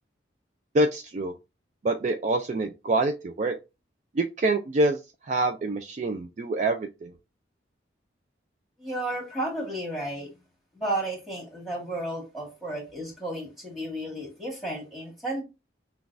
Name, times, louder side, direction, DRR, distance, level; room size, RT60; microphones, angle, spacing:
voice 1, 0.7-1.3 1.8-3.6 4.1-5.0 5.3-7.1, right 2 dB, 40° right, 0.3 m, -26 dB
voice 2, 8.8-10.3 10.7-15.4, right 1 dB, ahead, 1.6 m, -33 dB
6.0 x 2.3 x 2.5 m
head